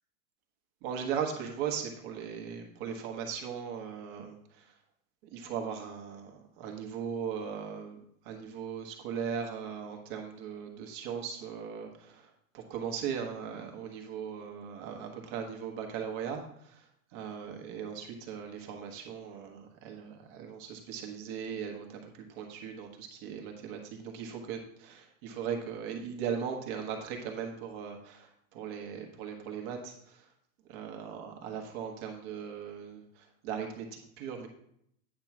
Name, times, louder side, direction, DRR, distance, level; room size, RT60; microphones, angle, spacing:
voice 1, 0.8-4.7 5.3-30.3 30.7-34.5, right 7 dB, 35° right, 3 dB, 1.2 m, -38 dB
8.8 x 3.0 x 5.9 m, 0.70 s
hypercardioid pair, 150°, 46 cm